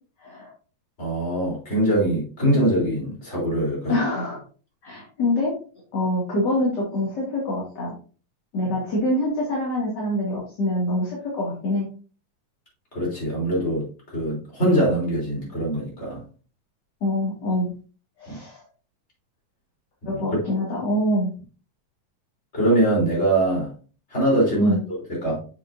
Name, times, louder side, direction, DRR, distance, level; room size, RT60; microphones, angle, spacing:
voice 1, 0.2-0.5 3.9-4.4 4.8-5.6 5.9-7.9 8.5-11.9 17.0-17.7 18.2-18.6 20.0-21.3 24.6-24.8, left 1 dB, 35° left, -5 dB, 2.5 m, -25 dB
voice 2, 1.0-4.0 12.9-13.9 14.1-16.2 18.3-18.4 20.0-20.2 22.5-23.7 24.1-25.4, right 1 dB, 20° left, -5 dB, 3.8 m, -23 dB
7.5 x 7.3 x 2.7 m, 0.37 s
omnidirectional pair, 3.8 m